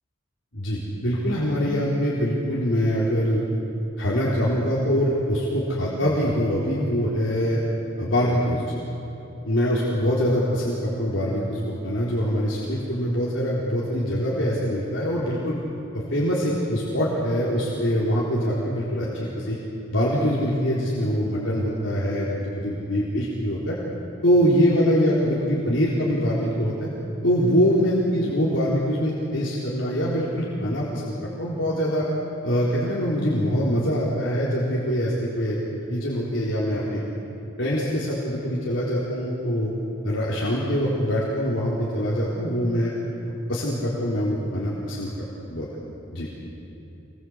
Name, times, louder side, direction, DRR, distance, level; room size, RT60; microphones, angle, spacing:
voice 1, 0.5-3.4 4.0-7.6 8.0-8.6 9.4-15.6 15.9-19.6 19.9-23.8 24.2-26.7 27.2-32.1 32.4-35.6 35.9-37.0 37.6-39.7 40.0-42.9 43.5-45.1 45.5-45.7 46.1-46.3, equal, 70° left, -6 dB, 4.0 m, -24 dB
26.5 x 21.0 x 8.1 m, 2.9 s
head